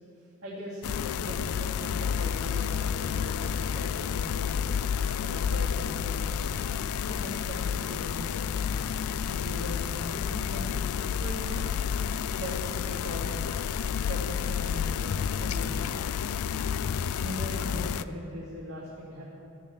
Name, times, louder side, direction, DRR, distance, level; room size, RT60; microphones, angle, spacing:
voice 1, 0.4-0.8 1.1-4.5 5.2-8.4 9.2-11.7 12.4-13.3 14.1-16.0 16.9-19.3, equal, 80° right, -9 dB, 2.8 m, -40 dB
sound 1, 0.8-18.0, left 7 dB, 80° left, 0.4 m, -30 dB
13.5 x 7.4 x 8.6 m, 2.7 s
head